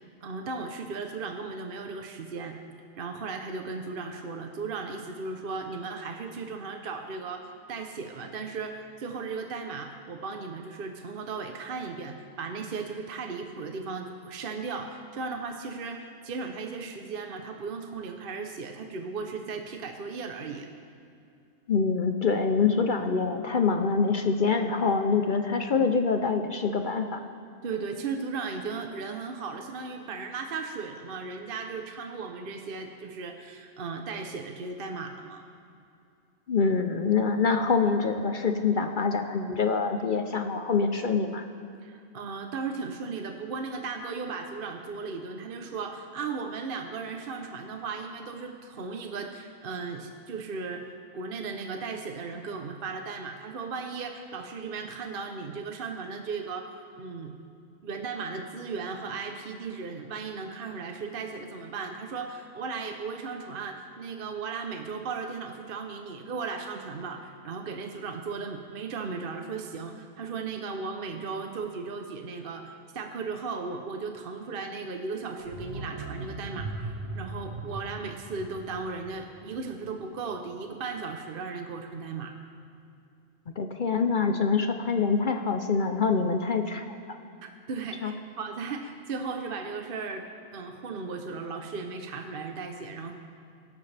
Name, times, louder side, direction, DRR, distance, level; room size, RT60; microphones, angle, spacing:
voice 1, 0.2-2.6 3.0-20.7 27.6-35.4 41.8-56.7 57.0-57.4 57.8-82.3 87.4-90.3 90.5-93.1, right 4 dB, 50° right, 4 dB, 0.9 m, -36 dB
voice 2, 21.7-27.2 36.5-41.5 83.6-86.9 88.0-88.1, left 5 dB, 50° left, 6 dB, 0.7 m, -25 dB
sound 1, 75.4-80.2 80.5-80.6, right 2 dB, 85° right, 1.6 m, -39 dB
23.0 x 12.0 x 3.4 m, 2.5 s
omnidirectional pair, 1.4 m